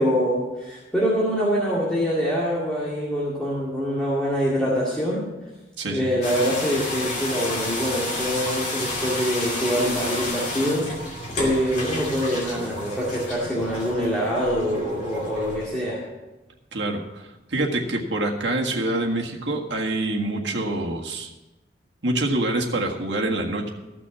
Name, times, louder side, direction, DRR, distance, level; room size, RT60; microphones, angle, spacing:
voice 1, 0.0-5.2 5.9-16.0, equal, 5° left, -7 dB, 2.1 m, -25 dB
voice 2, 5.8-6.1 16.7-21.3 22.0-23.7, right 2 dB, 80° right, 0 dB, 1.7 m, -26 dB
sound 1, 6.2-15.7, left 1 dB, 40° left, 2.6 m, -31 dB
14.0 x 6.2 x 7.0 m, 1.1 s
head